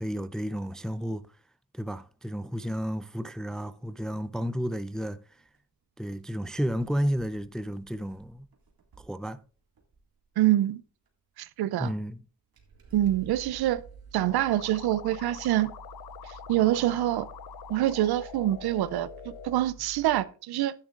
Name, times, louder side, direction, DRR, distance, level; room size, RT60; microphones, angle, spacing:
voice 1, 0.0-1.4 1.7-5.5 6.0-8.5 9.0-9.4 11.8-12.2, equal, ahead, 0.5 m, -32 dB
sound 1, 5.4-5.6 6.1-6.2 6.5-9.3 9.8-10.2 11.1-11.2 12.0-12.1 12.5-20.2, right 6 dB, 70° right, 2.1 m, -50 dB
voice 2, 10.4-10.8 11.4-11.9 12.9-13.8 14.1-15.7 16.5-17.3 17.7-19.1 19.4-20.7, right 14 dB, 90° right, 0.5 m, -25 dB
sound 2, 14.3-19.6, left 11 dB, 90° left, 0.6 m, -45 dB
11.5 x 9.8 x 2.4 m
supercardioid pair, 45°, 37 cm